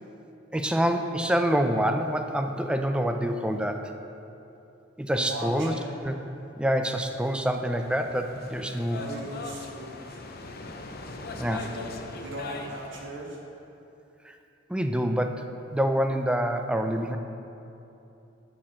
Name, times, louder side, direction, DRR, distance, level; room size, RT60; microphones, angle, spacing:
voice 1, 0.5-3.9 5.0-5.7 6.0-6.2 6.6-9.0 11.3-11.7 14.2-14.4 14.7-15.5 15.7-17.2, equal, 5° right, 5 dB, 0.4 m, -26 dB
voice 2, 5.1-6.0 8.9-10.8 11.6-13.4, right 1 dB, 70° right, -2 dB, 1.5 m, -39 dB
sound 1, 6.8-13.1, left 3 dB, 55° left, 0.6 m, -41 dB
10.0 x 4.3 x 6.3 m, 2.8 s
head